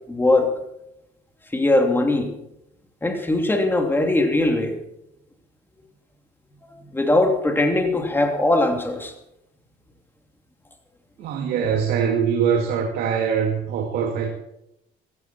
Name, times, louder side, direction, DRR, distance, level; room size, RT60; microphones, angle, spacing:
voice 1, 0.1-0.5 1.5-2.3 3.0-4.8 6.6-9.1, left 2 dB, 10° left, 4 dB, 3.0 m, -20 dB
voice 2, 11.2-14.3, right 7 dB, 75° right, 2 dB, 2.5 m, -23 dB
15.5 x 15.5 x 4.5 m, 0.83 s
cardioid pair, 110°, 17 cm